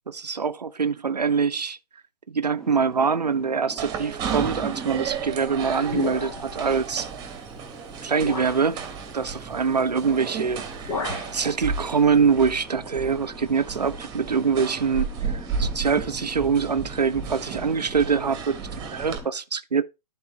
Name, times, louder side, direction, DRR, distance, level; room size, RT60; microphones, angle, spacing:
voice 1, 0.1-1.8 2.3-7.1 8.0-8.8 9.1-11.0 11.3-19.8, right 5 dB, 90° right, 0.6 m, -24 dB
Boat Water vehicle, 2.6-19.3, right 1 dB, ahead, 0.8 m, -45 dB
sound 1, 3.8-19.2, right 6 dB, 20° right, 1.4 m, -33 dB
sound 2, 5.9-6.7 7.5-7.7 8.2-8.7 10.1-10.3 10.6-11.4, left 4 dB, 45° left, 1.6 m, -32 dB
11.0 x 4.2 x 3.7 m
figure-of-eight pair, 125°, 20 cm